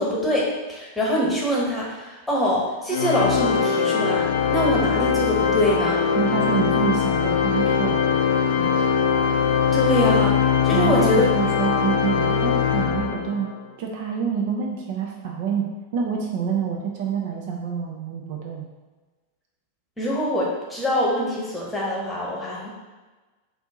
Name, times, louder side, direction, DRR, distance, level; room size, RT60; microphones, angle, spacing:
voice 1, 0.0-6.0 9.7-11.2 20.0-22.7, equal, 5° left, -5 dB, 1.1 m, -24 dB
Organ, 2.9-13.5, left 7 dB, 60° left, 0.4 m, -21 dB
voice 2, 6.2-8.2 8.6-8.9 10.7-13.5 13.8-18.7, right 6 dB, 50° right, 0 dB, 0.5 m, -27 dB
4.3 x 2.7 x 3.6 m, 1.2 s
figure-of-eight pair, 90°, 0 cm